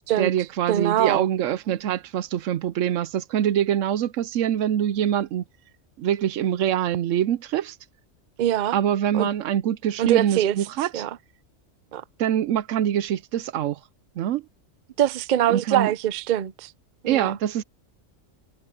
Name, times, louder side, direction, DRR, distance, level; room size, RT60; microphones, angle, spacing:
voice 1, 0.2-5.4 6.0-7.7 8.7-11.0 12.2-13.8 14.2-14.4 15.5-15.9 17.1-17.6, right 10 dB, 75° right, 0.9 m, -24 dB
voice 2, 0.7-1.3 8.4-8.8 9.1-9.3 10.0-10.6 10.9-11.2 11.9-12.0 15.0-16.7 17.0-17.3, right 11 dB, 50° right, 0.5 m, -23 dB
omnidirectional pair, 1.3 m